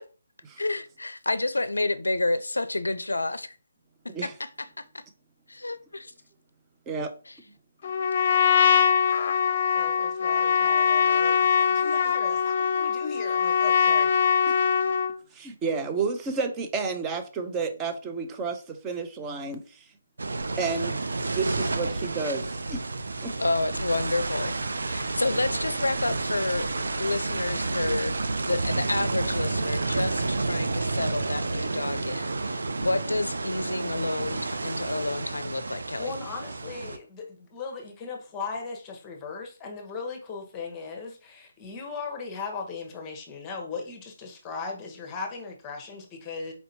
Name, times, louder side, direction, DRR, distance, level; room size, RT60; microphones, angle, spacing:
voice 1, 0.6-3.6 4.2-5.0 5.5-6.1 7.3-7.4 23.4-26.7 27.0-36.1, left 2 dB, 90° left, 0.4 m, -29 dB
Trumpet, 7.8-15.2, left 7 dB, 45° left, 0.6 m, -22 dB
voice 2, 9.7-14.1 36.0-46.5, left 4 dB, 15° left, 0.9 m, -38 dB
voice 3, 15.3-19.6 20.6-21.0 21.3-22.8 23.2-23.3, right 4 dB, 15° right, 0.5 m, -31 dB
sound 1, 20.2-37.0, right 3 dB, 75° right, 0.4 m, -30 dB
4.3 x 2.7 x 2.8 m
figure-of-eight pair, 155°, 0 cm